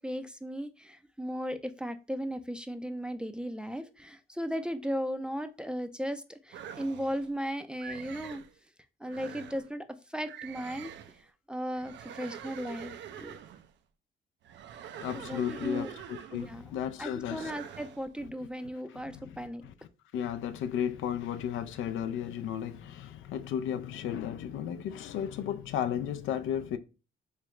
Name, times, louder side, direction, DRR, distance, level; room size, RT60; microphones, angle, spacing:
voice 1, 0.0-8.4 9.0-10.9 11.5-13.4 15.1-16.0 16.3-19.6, equal, 5° right, 0.4 m, -36 dB
sound 1, 6.5-7.3 7.8-8.5 9.0-9.7 10.2-11.2 11.7-13.7 14.4-16.6 17.3-18.1, right 9 dB, 65° right, 0.4 m, -45 dB
voice 2, 15.0-17.5 19.1-19.4 20.1-26.8, left 9 dB, 80° left, 0.5 m, -34 dB
3.6 x 3.2 x 3.1 m
cardioid pair, 90°, 20 cm